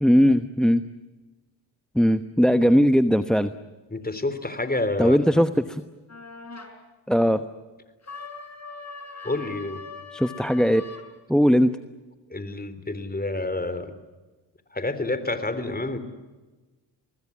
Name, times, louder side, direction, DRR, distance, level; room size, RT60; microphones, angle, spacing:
voice 1, 0.0-0.8 1.9-3.5 5.0-5.8 7.1-7.4 10.1-10.8 11.3-11.7, equal, ahead, 12 dB, 1.1 m, -19 dB
voice 2, 3.9-5.4 9.2-9.8 12.3-13.9 14.7-16.0, left 2 dB, 20° left, 12 dB, 3.7 m, -28 dB
sound 1, 6.1-6.7 8.0-11.1, left 4 dB, 35° left, 5.4 m, -40 dB
25.0 x 19.5 x 9.9 m, 1.2 s
supercardioid pair, 55°, 47 cm